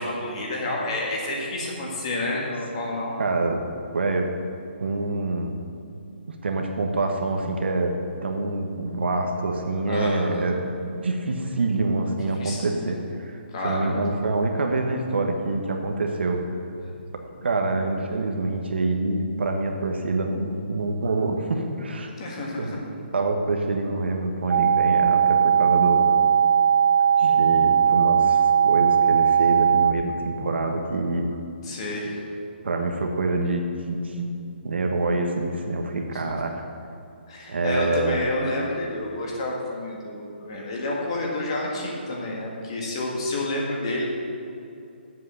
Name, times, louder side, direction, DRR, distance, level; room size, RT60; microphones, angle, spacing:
voice 1, 0.0-3.2 9.9-10.3 12.4-13.0 13.5-14.0 16.8-16.9 22.2-22.8 31.6-32.3 36.1-36.2 37.3-44.0, left 2 dB, 30° left, -2 dB, 1.8 m, -29 dB
voice 2, 3.2-3.6 3.9-4.3 4.8-5.5 6.3-7.9 8.2-16.4 17.4-22.1 22.6-22.7 23.1-26.2 27.2-31.4 32.6-34.3 34.6-36.7 37.5-38.2, right 2 dB, 65° right, 3 dB, 1.2 m, -26 dB
sound 1, 24.5-29.9, right 8 dB, 40° right, 0.5 m, -19 dB
8.4 x 7.6 x 6.5 m, 2.6 s
hypercardioid pair, 175°, 6 cm